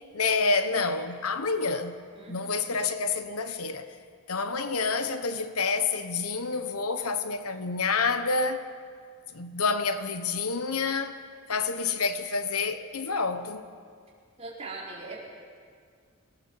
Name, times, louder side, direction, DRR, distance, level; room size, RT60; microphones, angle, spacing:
voice 1, 0.0-2.0 2.3-3.9 4.3-8.6 9.3-11.2 11.5-13.6, left 4 dB, 80° left, 1.2 m, -28 dB
voice 2, 2.1-2.7 14.4-15.2, right 3 dB, 30° right, 4.8 m, -41 dB
25.5 x 18.5 x 7.3 m
head